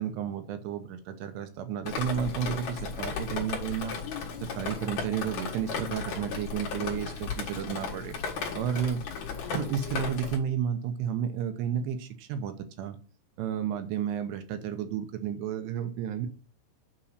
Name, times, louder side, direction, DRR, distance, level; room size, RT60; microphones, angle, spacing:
voice 1, 0.0-4.0 4.4-8.2 8.5-9.0 9.5-13.0 13.4-16.3, right 8 dB, 80° right, 2.8 m, -32 dB
Drip, 1.9-10.4, left 5 dB, 55° left, 2.2 m, -35 dB
8.5 x 3.0 x 6.4 m
omnidirectional pair, 5.2 m